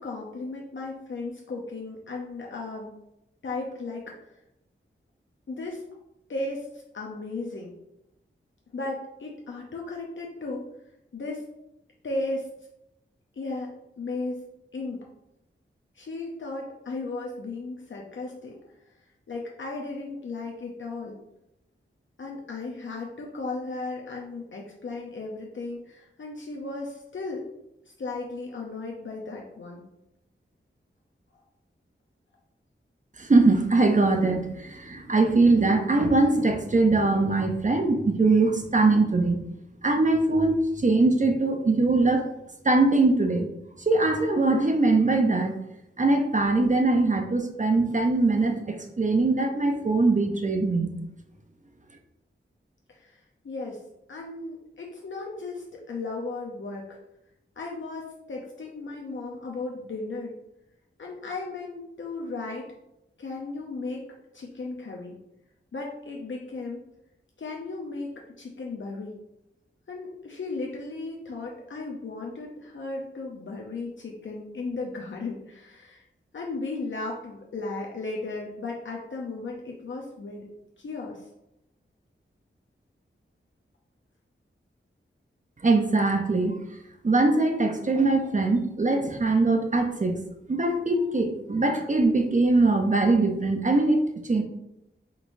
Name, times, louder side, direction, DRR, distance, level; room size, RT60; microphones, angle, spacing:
voice 1, 0.0-2.9 3.4-4.4 5.5-5.8 6.3-7.7 8.7-10.6 11.1-11.4 12.0-12.5 13.3-13.7 14.0-14.4 14.7-15.0 15.9-18.6 19.3-21.2 22.2-27.4 27.9-29.8 52.9-53.8 54.1-57.0 57.6-60.3 61.0-62.7 63.2-64.1 64.3-65.2 65.7-66.8 67.4-69.1 69.9-76.0 76.3-80.4 80.8-81.3, left 3 dB, 65° left, -2 dB, 0.6 m, -35 dB
voice 2, 33.2-39.4 39.8-42.3 42.6-43.5 43.9-45.6 46.0-51.0 85.6-86.6 87.0-90.2 90.5-94.4, right 3 dB, 35° right, 4 dB, 0.6 m, -22 dB
5.2 x 3.0 x 2.6 m, 0.87 s
wide cardioid pair, 60°, 21 cm